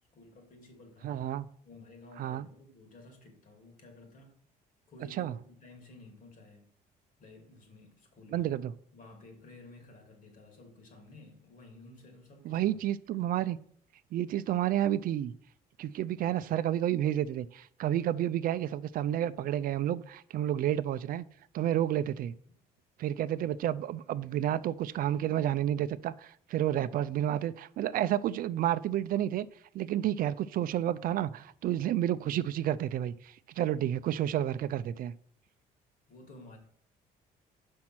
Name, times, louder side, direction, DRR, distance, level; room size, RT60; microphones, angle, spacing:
voice 1, 0.1-1.3 1.6-4.4 4.9-6.7 7.2-8.6 8.9-12.9 13.1-13.4 22.5-22.6 36.1-36.6, left 2 dB, 50° left, 2.4 m, -53 dB
voice 2, 1.0-1.5 2.2-2.5 5.2-5.3 8.3-8.7 12.4-13.6 14.1-15.3 15.8-21.2 21.5-22.3 23.0-29.5 29.7-35.1, right 11 dB, 60° right, 0.4 m, -30 dB
5.8 x 5.3 x 6.0 m
cardioid pair, 110°, 17 cm